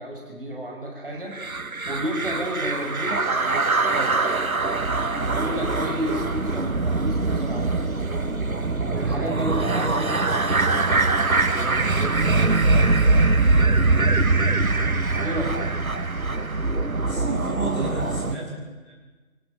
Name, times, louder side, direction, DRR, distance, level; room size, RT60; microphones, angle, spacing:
voice 1, 0.0-1.4 1.9-4.2 5.2-8.3 8.6-12.5 15.2-15.6, equal, 40° right, 0 dB, 5.8 m, -32 dB
sound 1, 1.3-18.3, right 3 dB, 70° right, 1.7 m, -22 dB
voice 2, 17.0-18.9, right 2 dB, 10° left, -9 dB, 7.1 m, -31 dB
29.5 x 16.5 x 9.2 m, 1.3 s
figure-of-eight pair, 165°, 43 cm